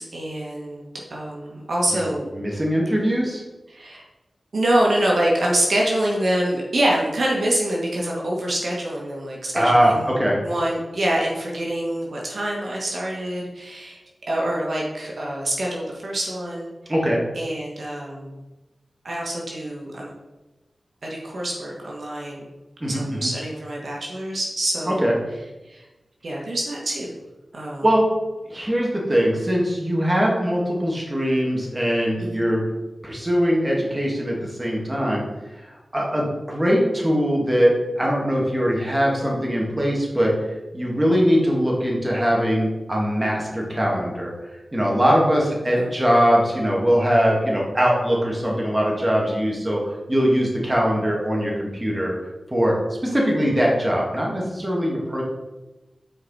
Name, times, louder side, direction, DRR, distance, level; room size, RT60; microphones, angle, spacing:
voice 1, 0.0-2.3 3.7-4.0 4.5-14.0 14.3-16.7 17.3-18.4 19.0-20.1 21.0-22.5 22.8-25.1 25.7-25.8 26.2-27.1 27.5-27.9 32.2-32.4 45.7-45.9, right 1 dB, 70° right, -3 dB, 1.5 m, -25 dB
voice 2, 2.3-3.4 9.5-10.4 16.9-17.2 22.8-23.3 24.9-25.1 27.8-28.1 28.5-32.6 33.0-35.2 35.9-40.3 40.7-44.3 44.7-52.1 52.5-52.8 53.0-55.2, equal, 20° right, -3 dB, 2.0 m, -21 dB
8.9 x 4.7 x 4.2 m, 1.1 s
wide cardioid pair, 95°, 0 cm